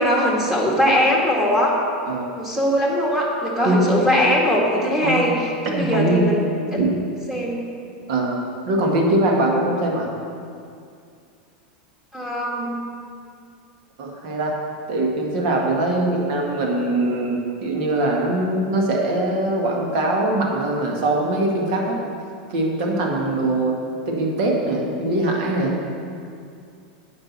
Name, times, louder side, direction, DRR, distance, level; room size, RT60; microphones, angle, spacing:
voice 1, 0.0-1.8 2.4-5.4 5.7-6.4 6.7-6.8 7.3-7.7 12.1-12.8, equal, 5° right, -3 dB, 2.0 m, -20 dB
voice 2, 5.7-6.3 6.7-6.9 8.1-8.4 8.7-10.1 14.0-14.5 14.9-22.0 22.5-23.8 24.1-25.8, right 2 dB, 65° right, -1 dB, 1.9 m, -22 dB
9.1 x 5.3 x 7.4 m, 2.4 s
hypercardioid pair, 120°, 5 cm